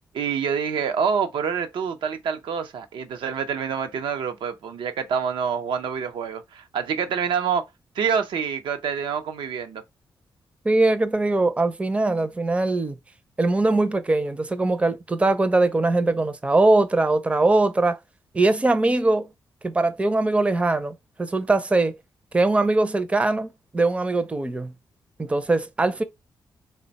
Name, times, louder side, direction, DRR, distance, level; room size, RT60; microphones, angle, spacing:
voice 1, 0.1-7.6 8.0-9.8, right 7 dB, 90° right, 0.5 m, -26 dB
voice 2, 10.6-13.0 13.4-18.0 18.3-19.3 19.6-22.0 22.3-24.7 25.2-26.0, right 2 dB, 15° right, 0.4 m, -21 dB
3.4 x 2.1 x 3.9 m
cardioid pair, 105°, 8 cm